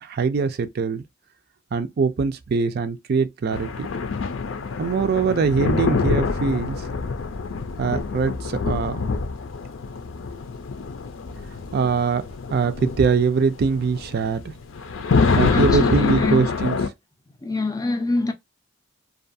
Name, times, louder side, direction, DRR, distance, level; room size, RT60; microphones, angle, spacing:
voice 1, 0.0-1.0 1.7-3.9 4.8-6.9 7.8-9.0 11.7-12.3 12.5-14.4 15.3-16.8, right 5 dB, 55° right, 0.4 m, -22 dB
sound 1, 3.5-16.9, left 4 dB, 80° left, 0.5 m, -25 dB
voice 2, 15.2-16.5 17.4-18.3, left 2 dB, 20° left, 0.4 m, -25 dB
2.6 x 2.3 x 2.5 m
head